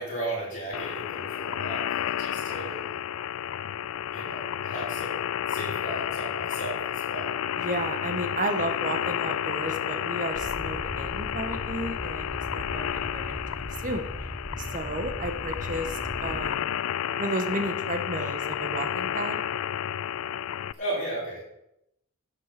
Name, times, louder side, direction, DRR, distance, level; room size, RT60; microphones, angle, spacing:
voice 1, 0.0-2.8 4.1-7.3 20.7-21.4, right 1 dB, 40° left, -13 dB, 5.4 m, -35 dB
sound 1, 0.7-20.7, left 9 dB, 85° left, 0.4 m, -31 dB
voice 2, 7.6-14.1 14.6-16.8 17.2-19.4, right 1 dB, 40° right, 6 dB, 1.5 m, -33 dB
sound 2, 10.3-16.5, equal, 5° left, 0.6 m, -38 dB
11.5 x 8.3 x 6.1 m, 0.82 s
head